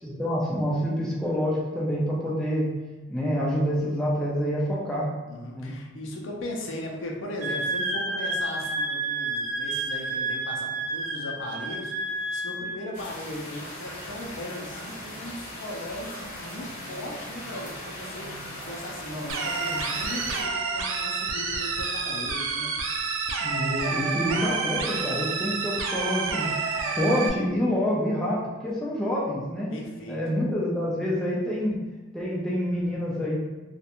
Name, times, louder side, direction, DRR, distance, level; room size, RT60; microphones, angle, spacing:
voice 1, 0.0-2.7 3.1-5.1 5.5-5.7 23.4-26.5 26.9-29.7 30.1-31.8 32.1-33.4, equal, 5° left, -6 dB, 0.4 m, -27 dB
voice 2, 5.3-18.4 18.7-22.7 29.7-30.2, left 1 dB, 70° left, -1 dB, 0.5 m, -38 dB
Wind instrument woodwind instrument, 7.4-12.7, right 2 dB, 45° right, 0.9 m, -30 dB
sound 1, 12.9-20.4, left 1 dB, 40° left, 0.7 m, -39 dB
sound 2, 19.3-27.3, right 4 dB, 80° right, 0.4 m, -29 dB
2.4 x 2.1 x 2.8 m, 1.1 s
head